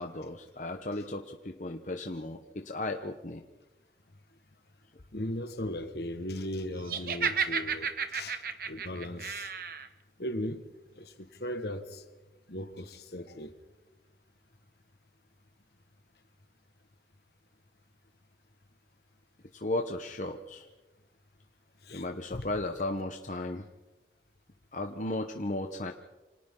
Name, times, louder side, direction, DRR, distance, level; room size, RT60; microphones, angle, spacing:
voice 1, 0.0-3.4 19.5-20.7 21.9-23.7 24.7-25.9, left 2 dB, 45° left, 4 dB, 0.9 m, -35 dB
voice 2, 5.1-9.5 10.2-10.6 10.9-12.0 12.5-13.5 21.8-22.0 22.3-22.5, left 1 dB, 65° left, 9 dB, 1.5 m, -37 dB
Laughter, 6.9-9.9, right 6 dB, 50° right, 1.1 m, -32 dB
28.5 x 26.5 x 3.8 m, 1.1 s
head